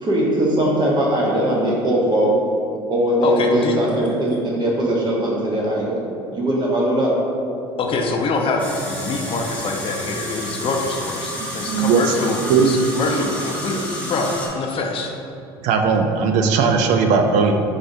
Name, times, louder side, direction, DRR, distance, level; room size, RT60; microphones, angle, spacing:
voice 1, 0.0-2.3 2.9-6.0 6.3-7.1, right 1 dB, 35° right, -4 dB, 1.0 m, -20 dB
voice 2, 3.2-3.8 7.8-15.1, left 3 dB, 40° left, 2 dB, 0.6 m, -24 dB
sound 1, 8.6-14.5, equal, 10° left, 1.2 m, -31 dB
voice 3, 11.6-12.0 12.5-12.8 15.6-17.5, right 5 dB, 65° right, 5 dB, 0.5 m, -17 dB
4.7 x 4.0 x 2.7 m, 2.7 s
hypercardioid pair, 70°, 14 cm